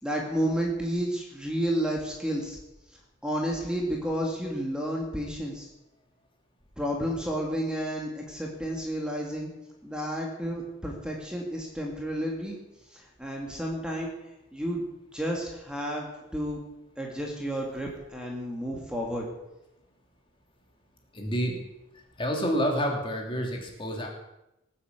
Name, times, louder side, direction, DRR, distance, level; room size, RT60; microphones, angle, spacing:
voice 1, 0.0-2.6 2.9-5.7 6.8-9.5 9.8-12.6 12.9-14.1 14.5-14.8 15.1-16.6 17.0-19.3, equal, 5° right, -1 dB, 2.6 m, -31 dB
voice 2, 21.1-21.6 22.2-24.1, equal, 25° left, 1 dB, 3.1 m, -28 dB
20.0 x 8.6 x 8.3 m, 0.91 s
head